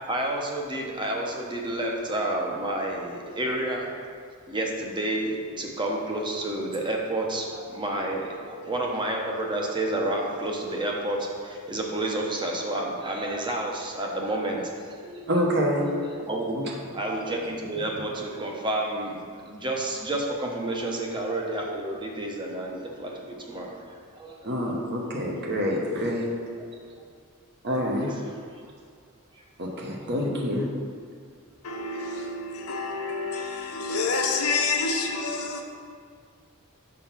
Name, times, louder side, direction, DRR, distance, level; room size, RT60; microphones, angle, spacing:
voice 1, 0.1-3.9 4.5-15.5 16.0-23.8 24.1-24.4 26.9-27.1 28.0-28.1 29.3-29.4 30.0-30.1, right 1 dB, 20° right, 0.7 m, -30 dB
voice 2, 15.3-15.9 16.5-16.6 24.4-26.3 27.6-28.1 29.6-30.7, equal, 50° right, 1.0 m, -26 dB
voice 3, 31.6-35.6, left 4 dB, 75° left, 0.7 m, -28 dB
5.5 x 3.7 x 5.9 m
head